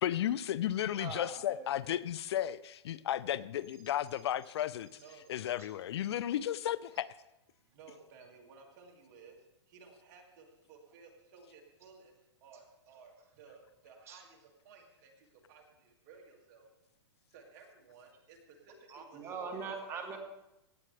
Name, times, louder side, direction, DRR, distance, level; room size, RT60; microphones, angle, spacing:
voice 1, 0.0-5.0 5.3-7.1, left 11 dB, 65° left, 0.4 m, -34 dB
voice 2, 1.0-1.7 14.1-14.2 18.9-20.2, right 5 dB, 20° right, 1.6 m, -42 dB
voice 3, 4.9-5.3 7.7-9.4 9.7-12.1 12.4-16.7 17.3-20.0, right 5 dB, 40° right, 2.1 m, -57 dB
16.5 x 8.5 x 3.3 m
hypercardioid pair, 150°, 15 cm